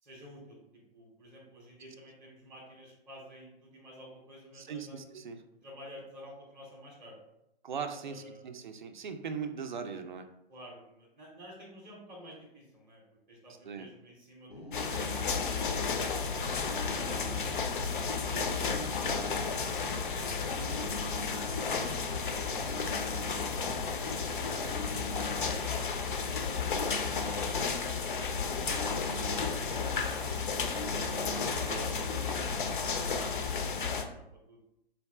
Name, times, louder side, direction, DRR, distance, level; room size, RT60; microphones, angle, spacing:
voice 1, 0.0-5.0 5.6-7.2 8.0-8.5 10.5-15.9 16.4-17.5 17.9-19.3 19.7-23.3 24.2-24.9 25.4-26.9 27.2-29.3 29.5-30.3 31.0-34.6, equal, 5° right, -7 dB, 0.6 m, -52 dB
voice 2, 4.5-5.4 7.6-10.3 13.7-13.9 18.3-18.8 31.6-32.1, right 6 dB, 50° right, 7 dB, 0.4 m, -40 dB
sound 1, 14.5-15.6 16.5-17.6 18.5-19.6 20.5-21.6 22.5-23.7 24.5-25.7 26.5-27.7 28.5-29.7 30.6-31.7, left 1 dB, 85° left, 0.8 m, -43 dB
sound 2, 14.7-34.0, left 5 dB, 55° left, 0.5 m, -33 dB
4.0 x 2.3 x 3.3 m, 0.83 s
figure-of-eight pair, 120°, 30 cm